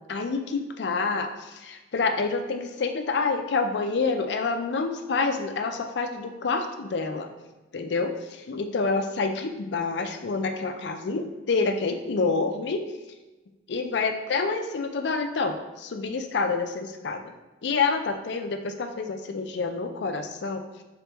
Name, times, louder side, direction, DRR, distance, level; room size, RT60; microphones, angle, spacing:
voice 1, 0.1-7.3 7.7-12.9 13.7-17.3 17.6-20.6, left 4 dB, 65° left, 6 dB, 0.4 m, -28 dB
3.7 x 3.4 x 3.0 m, 1.2 s
head